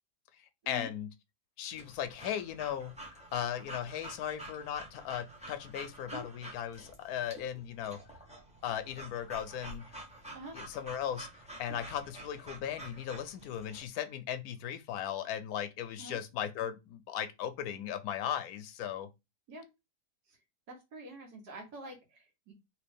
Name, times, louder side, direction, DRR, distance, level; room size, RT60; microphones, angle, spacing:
voice 1, 0.7-1.1 1.6-2.9 3.3-8.0 8.6-10.0 10.5-11.3 11.6-19.1, left 10 dB, 70° left, 1.0 m, -37 dB
Breathing / Dog, 1.7-13.9, right 1 dB, 5° right, 0.5 m, -49 dB
voice 2, 20.7-22.5, right 1 dB, 70° right, 1.6 m, -46 dB
3.0 x 3.0 x 3.4 m
omnidirectional pair, 1.8 m